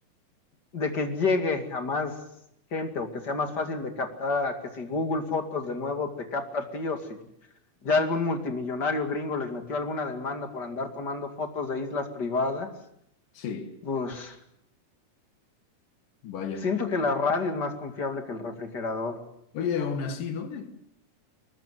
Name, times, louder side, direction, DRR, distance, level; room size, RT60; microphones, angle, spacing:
voice 1, 0.7-2.2 2.7-7.2 7.8-12.7 13.9-14.4 16.6-19.2, left 3 dB, 35° left, 2.3 m, -29 dB
voice 2, 13.3-13.7 16.2-16.7 19.5-20.8, left 6 dB, 65° left, 3.4 m, -32 dB
23.5 x 20.5 x 7.9 m
omnidirectional pair, 4.2 m